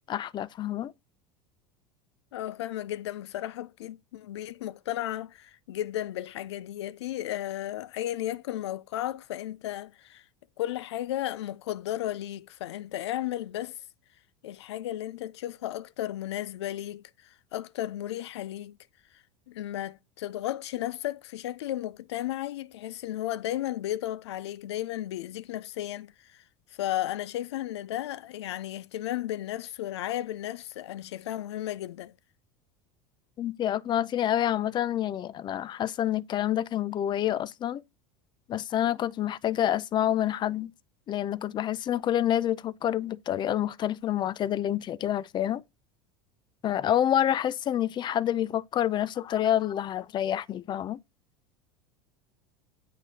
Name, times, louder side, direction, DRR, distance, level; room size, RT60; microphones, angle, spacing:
voice 1, 0.1-0.9 33.4-37.8 38.5-40.7 41.1-45.6 46.6-51.0, left 11 dB, 35° left, 0.5 m, -28 dB
voice 2, 2.3-10.2 10.6-13.8 14.4-18.8 19.1-26.4 26.7-32.1, left 13 dB, 85° left, 0.4 m, -34 dB
8.5 x 3.1 x 4.0 m
hypercardioid pair, 100°, 14 cm